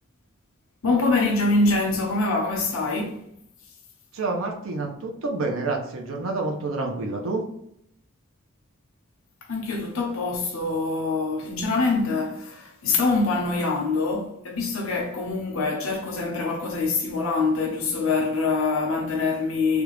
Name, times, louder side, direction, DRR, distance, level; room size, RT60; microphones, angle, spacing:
voice 1, 0.8-3.2 9.5-19.8, left 3 dB, 85° left, 0.8 m, -24 dB
voice 2, 4.1-7.4, right 3 dB, 75° right, 0.7 m, -28 dB
3.5 x 2.4 x 3.1 m
head